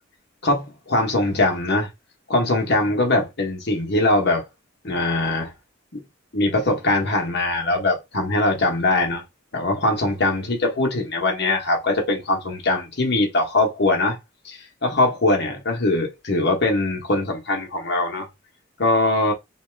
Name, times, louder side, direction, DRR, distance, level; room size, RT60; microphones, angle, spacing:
voice 1, 0.4-1.9 2.3-4.4 4.8-5.5 5.9-6.0 6.3-9.2 9.5-14.2 14.4-18.3 18.8-19.3, left 2 dB, 55° left, 1.0 m, -21 dB
2.7 x 2.3 x 3.2 m
head